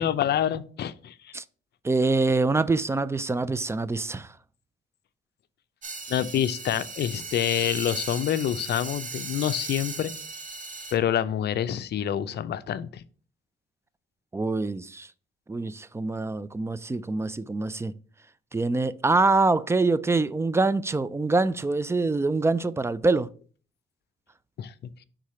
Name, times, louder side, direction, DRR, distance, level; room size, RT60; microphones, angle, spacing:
voice 1, 0.0-1.3 6.1-10.1 10.9-13.0 24.6-24.9, left 10 dB, 55° left, 0.5 m, -27 dB
voice 2, 1.8-4.4 6.3-6.4 14.3-15.1 15.5-17.9 18.5-23.3, right 3 dB, 15° right, 0.3 m, -25 dB
sound 1, 5.8-10.9, right 4 dB, 40° right, 1.2 m, -37 dB
4.8 x 3.8 x 5.4 m
cardioid pair, 90°, 20 cm